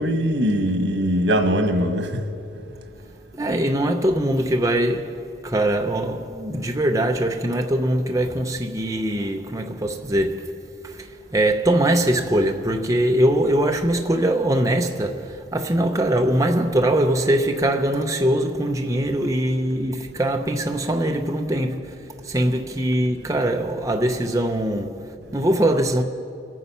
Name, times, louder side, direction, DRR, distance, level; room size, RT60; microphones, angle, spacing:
voice 1, 0.0-2.2, equal, 85° right, 1.5 m, -21 dB
voice 2, 3.3-10.5 10.8-26.0, right 1 dB, 20° right, 0.7 m, -22 dB
27.0 x 9.4 x 5.6 m
head